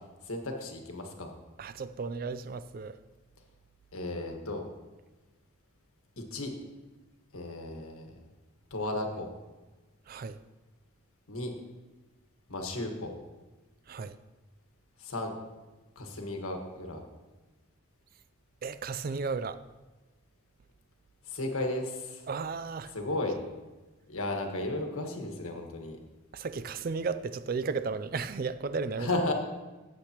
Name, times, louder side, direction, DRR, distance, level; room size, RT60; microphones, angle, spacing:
voice 1, 0.2-1.3 3.9-4.7 6.2-6.5 7.3-8.2 8.7-9.3 11.3-11.5 12.5-13.1 15.0-15.3 15.9-17.0 21.2-22.3 22.9-23.4 24.1-26.0 29.0-29.3, left 2 dB, 85° left, 1.5 m, -34 dB
voice 2, 1.6-3.0 10.1-10.4 13.9-14.2 18.6-19.6 22.3-23.0 26.3-29.1, right 4 dB, 45° right, 0.3 m, -34 dB
14.5 x 8.2 x 2.9 m
head